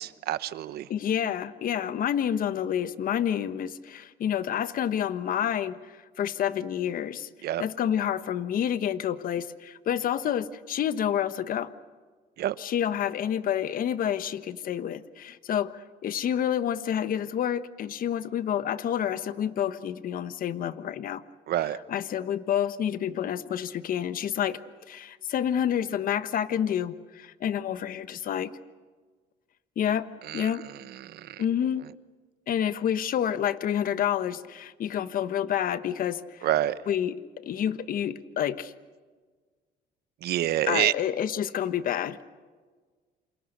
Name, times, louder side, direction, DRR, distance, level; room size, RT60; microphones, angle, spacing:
voice 1, 0.0-0.9 7.4-7.6 12.4-12.6 21.5-21.8 30.2-31.4 36.4-36.8 40.2-40.9, right 13 dB, 70° right, 15 dB, 1.1 m, -28 dB
voice 2, 0.9-7.3 7.6-11.7 12.6-21.2 21.9-24.6 24.9-28.5 29.8-30.1 30.3-30.7 31.4-31.8 32.5-36.5 36.9-37.2 37.4-38.7 40.7-42.2, left 9 dB, 55° left, 13 dB, 1.3 m, -28 dB
28.5 x 27.0 x 6.6 m, 1.5 s
cardioid pair, 110°, 17 cm